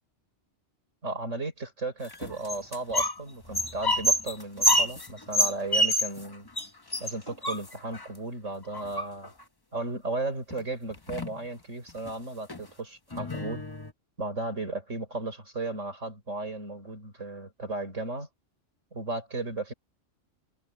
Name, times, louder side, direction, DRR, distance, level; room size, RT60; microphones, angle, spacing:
voice 1, 1.0-6.5 7.0-9.3 9.7-13.6 14.2-18.3 18.9-19.7, right 2 dB, 90° right, 5.3 m, -35 dB
sound 1, 2.0-3.2 3.5-6.3 6.6-6.7 6.9-8.1 8.7-9.4 10.5-10.6 10.9-11.4 11.9-12.1 12.5-12.6 13.1-13.9, equal, 20° left, 1.0 m, -27 dB
omnidirectional pair, 1.2 m